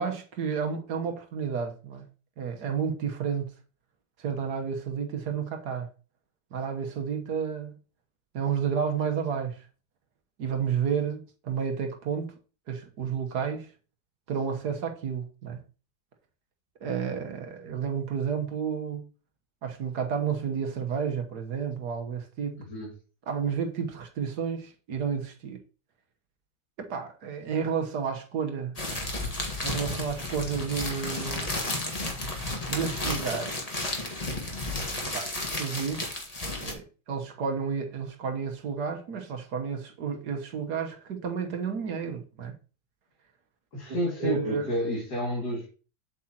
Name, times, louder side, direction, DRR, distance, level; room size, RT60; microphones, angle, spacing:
voice 1, 0.0-2.1 2.4-3.5 4.2-5.9 6.5-7.8 8.3-9.7 10.4-12.3 12.7-13.7 14.3-15.6 16.8-19.1 19.6-22.6 23.3-25.6 26.8-28.7 29.6-31.5 32.7-33.7 35.0-36.2 36.6-42.5 43.9-44.7, right 6 dB, 60° right, 1.6 m, -31 dB
voice 2, 22.6-22.9 43.7-45.7, equal, 55° left, 3.0 m, -30 dB
sound 1, 28.8-36.7, left 2 dB, 20° left, 1.6 m, -32 dB
7.8 x 7.6 x 2.9 m
omnidirectional pair, 2.1 m